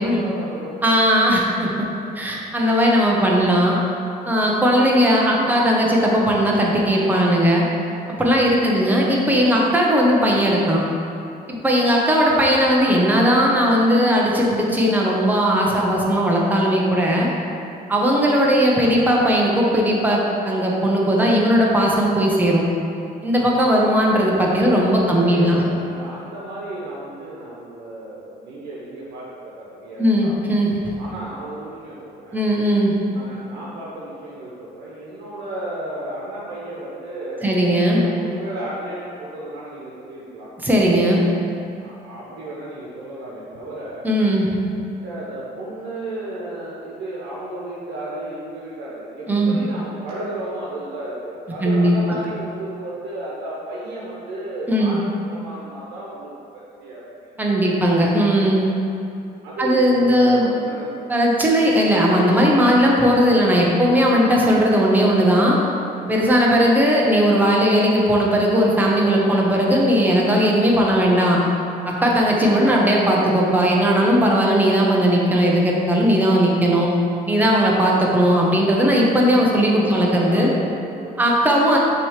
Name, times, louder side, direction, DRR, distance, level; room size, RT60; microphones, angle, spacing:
voice 1, 0.0-0.8 4.7-5.0 5.3-5.6 8.4-8.9 24.6-24.7 25.0-30.5 31.0-32.4 33.0-40.5 41.8-44.1 44.9-57.8 59.4-61.2 79.8-81.2, right 1 dB, 85° right, -6 dB, 1.1 m, -34 dB
voice 2, 0.8-1.9 2.1-3.8 4.3-7.7 8.1-10.8 11.5-17.3 17.9-22.6 23.2-25.6 30.0-30.9 32.3-32.9 37.4-38.0 40.6-41.2 44.0-44.5 49.3-49.6 51.6-52.0 54.7-55.0 57.4-58.6 59.6-60.5 61.1-65.6 66.1-71.4 71.8-76.9 77.3-80.5 81.2-81.8, equal, 10° right, -3 dB, 1.0 m, -17 dB
5.9 x 3.2 x 5.0 m, 2.6 s
cardioid pair, 110°, 17 cm